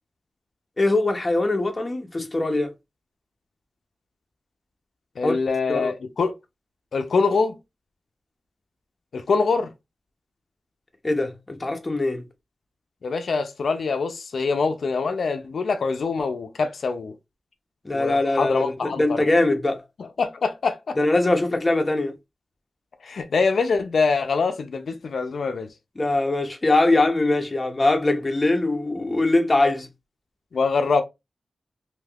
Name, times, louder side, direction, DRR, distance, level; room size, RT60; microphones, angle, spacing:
voice 1, 0.8-2.7 5.2-5.4 5.7-5.9 11.0-12.2 17.8-19.8 21.0-22.1 26.0-29.9, left 2 dB, 25° left, 0.7 m, -22 dB
voice 2, 5.2-6.3 6.9-7.6 9.1-9.7 13.0-17.1 17.9-19.3 20.2-21.0 23.0-25.7 30.5-31.0, left 4 dB, 80° left, 0.4 m, -24 dB
3.3 x 2.6 x 2.3 m
wide cardioid pair, 95°, 0 cm